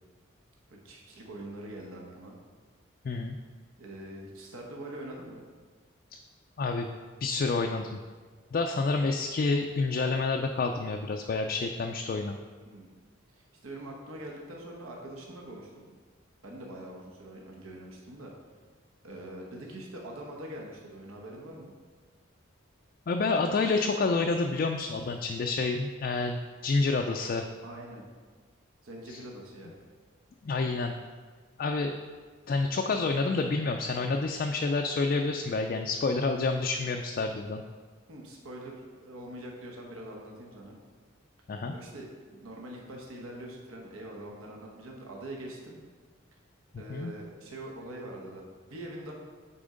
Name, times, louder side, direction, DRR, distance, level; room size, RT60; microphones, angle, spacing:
voice 1, 0.7-2.4 3.8-5.4 12.6-12.9 13.3-15.8 16.4-18.3 19.0-21.7 27.6-28.0 28.8-29.7 38.1-40.8 41.7-45.8 46.8-49.1, right 1 dB, 80° right, -1 dB, 1.1 m, -43 dB
voice 2, 3.0-3.4 6.6-6.9 7.2-8.0 8.5-12.4 23.1-27.5 29.1-29.2 30.4-30.9 31.6-31.9 32.5-37.6 41.5-41.7 46.9-47.1, left 3 dB, 45° left, 3 dB, 0.3 m, -28 dB
8.7 x 4.2 x 3.8 m, 1.5 s
head